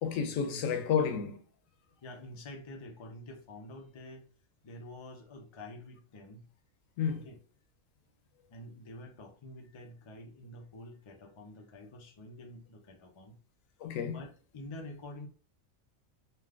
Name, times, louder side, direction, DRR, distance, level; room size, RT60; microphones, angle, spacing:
voice 1, 0.0-1.4 7.0-7.3 13.8-14.2, left 7 dB, 85° left, 1.0 m, -31 dB
voice 2, 2.0-4.3 4.6-6.5 7.1-7.4 8.5-13.3 14.1-15.3, left 1 dB, 50° left, 0.3 m, -48 dB
3.3 x 2.5 x 2.4 m
omnidirectional pair, 1.3 m